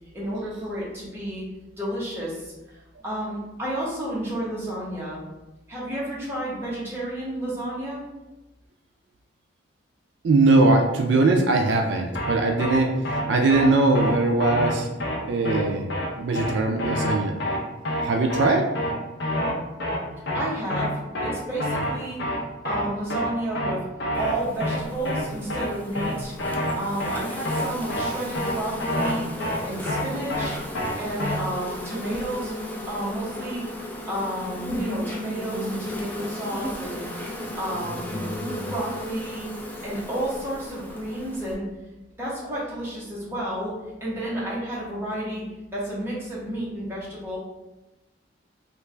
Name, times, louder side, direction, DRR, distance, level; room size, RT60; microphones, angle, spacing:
voice 1, 0.1-1.4 1.8-2.5 3.0-5.2 5.7-8.0 20.2-22.2 22.6-23.8 24.2-26.3 26.8-29.2 29.6-30.6 31.0-32.5 32.9-33.6 34.1-38.2 38.7-39.5 39.8-41.7 42.2-43.7 44.0-47.4, right 1 dB, 15° right, -7 dB, 1.0 m, -31 dB
voice 2, 10.2-14.9 15.2-15.9 16.2-17.4 18.0-18.7, right 2 dB, 70° right, 3 dB, 0.3 m, -21 dB
sound 1, 12.2-12.3 12.6-12.8 13.1-13.2 13.5-13.7 14.0-14.1 14.4-14.7 15.0-15.2 15.5-15.6 15.9-16.1 16.4-16.5 16.8-17.1 17.4-17.6 17.9-18.0 18.3-18.5 18.8-18.9 19.2-19.5 19.8-20.0 20.3-20.4 20.7-20.9 21.2-21.3 21.6-21.9 22.2-22.4 22.7-22.8 23.1-23.3 23.6-23.7 24.0-24.3 24.6-24.8 25.1-25.2 25.5-25.7 26.0-26.1 26.4-26.7 27.0-27.2 27.5-27.6 27.9-28.1 28.4-28.5 28.8-29.1 29.4-29.6 29.9-30.0 30.3-30.5 30.8-30.9 31.2-31.4, left 1 dB, 65° left, 0.6 m, -27 dB
Insect, 24.1-41.6, left 1 dB, 10° left, 0.3 m, -35 dB
3.2 x 2.4 x 3.2 m, 1.0 s
head